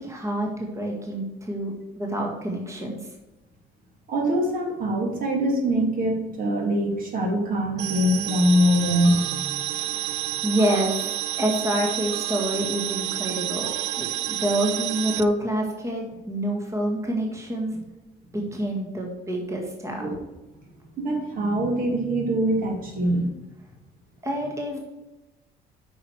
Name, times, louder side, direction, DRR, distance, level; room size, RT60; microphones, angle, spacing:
voice 1, 0.0-3.1 9.9-13.7 14.0-17.8 18.3-20.1 24.2-24.8, right 1 dB, 15° right, 1 dB, 1.8 m, -27 dB
voice 2, 4.1-9.5 20.0-20.2 21.0-23.3, equal, 55° right, 1 dB, 2.5 m, -23 dB
sound 1, 7.8-15.2, right 13 dB, 90° right, 0.5 m, -29 dB
8.9 x 6.1 x 4.8 m, 1.0 s
cardioid pair, 110°, 17 cm